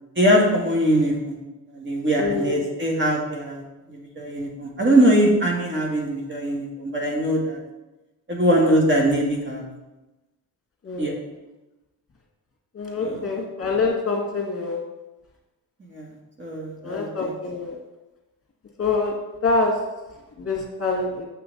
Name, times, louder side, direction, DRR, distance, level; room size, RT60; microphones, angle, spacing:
voice 1, 0.2-1.4 1.7-3.6 3.9-7.6 8.3-9.6 11.0-11.1 13.0-13.3 15.9-16.1 16.4-17.3, right 1 dB, 30° right, -2 dB, 1.9 m, -22 dB
voice 2, 2.2-2.6 10.9-11.1 12.8-14.8 16.8-17.7 18.8-19.1 19.4-19.7 20.4-21.2, left 3 dB, 40° left, -1 dB, 1.9 m, -25 dB
7.0 x 5.8 x 4.0 m, 1.1 s
cardioid pair, 80°, 37 cm